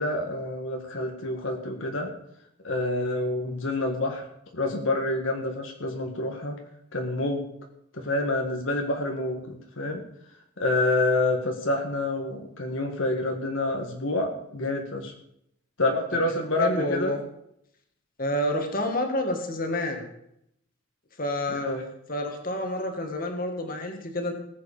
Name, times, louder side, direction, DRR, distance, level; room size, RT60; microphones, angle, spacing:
voice 1, 0.0-2.1 2.6-4.2 4.5-6.6 6.9-7.4 7.9-10.0 10.6-15.1 15.8-17.1 21.5-21.8, left 2 dB, 70° left, 2 dB, 1.8 m, -27 dB
voice 2, 16.6-17.2 18.2-20.1 21.2-21.7 22.1-24.3, left 1 dB, 45° left, 4 dB, 2.1 m, -28 dB
19.0 x 8.2 x 5.2 m, 0.76 s
head